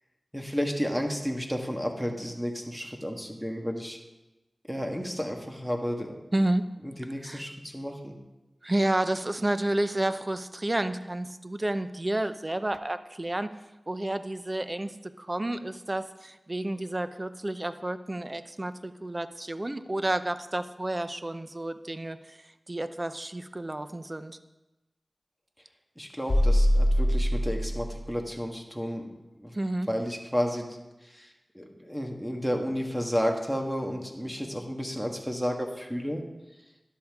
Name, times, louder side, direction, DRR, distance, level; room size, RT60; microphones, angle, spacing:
voice 1, 0.3-4.0 4.7-6.1 6.8-8.1 26.0-29.1 29.4-29.5 29.9-30.7 31.0-31.3 31.5-36.2, equal, 5° right, 2 dB, 1.5 m, -32 dB
voice 2, 6.3-6.7 7.2-7.4 8.6-13.5 13.9-24.4 29.5-29.9, right 1 dB, 30° right, 11 dB, 0.6 m, -30 dB
sound 1, 26.3-28.1, equal, 40° left, 4.3 m, -23 dB
12.5 x 11.0 x 3.6 m, 1.0 s
wide cardioid pair, 75°, 0 cm